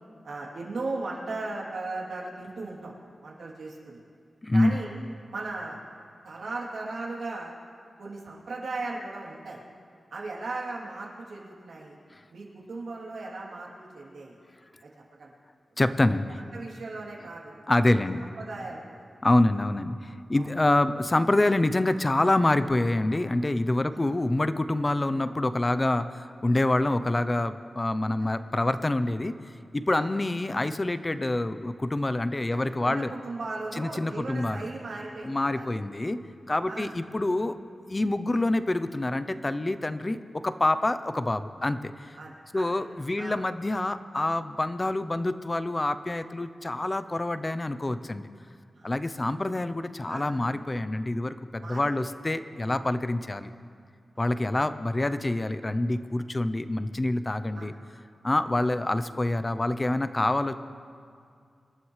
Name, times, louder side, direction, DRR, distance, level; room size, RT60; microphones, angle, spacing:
voice 1, 0.2-2.9 3.2-4.0 4.5-4.9 5.3-5.8 6.2-7.5 8.0-9.6 10.1-12.0 12.3-14.4 14.8-14.9 15.2-15.3 16.5-17.6 17.9-18.1 18.4-19.1 20.3-20.5 23.9-24.2 29.9-30.1 32.5-35.7 36.6-36.9 42.2-42.8 43.2-43.4 48.8-49.1 50.1-50.2 51.6-52.1 57.5-57.7, right 3 dB, 85° right, -4 dB, 3.0 m, -37 dB
voice 2, 4.4-4.8 15.8-16.4 17.7-18.3 19.2-29.4 29.7-33.1 33.8-34.7 35.2-36.2 36.5-37.6 37.9-42.2 42.5-48.3 48.8-53.5 54.2-57.7 58.2-60.5, left 2 dB, 25° left, 11 dB, 0.6 m, -26 dB
26.5 x 12.5 x 3.2 m, 2.2 s
wide cardioid pair, 115°, 0 cm